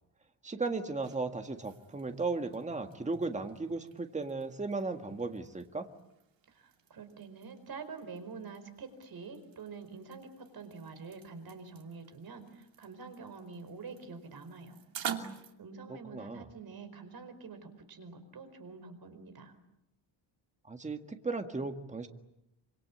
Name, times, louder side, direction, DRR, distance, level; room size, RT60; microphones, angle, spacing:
voice 1, 0.4-5.9 15.9-16.5 20.7-22.1, right 3 dB, 15° right, 6 dB, 1.7 m, -36 dB
sound 1, 0.7-15.5, right 8 dB, 75° right, 2.8 m, -48 dB
voice 2, 6.5-14.8 15.6-19.5, right 4 dB, 50° right, 8 dB, 4.8 m, -47 dB
26.5 x 26.0 x 8.6 m, 0.87 s
wide cardioid pair, 170°, 46 cm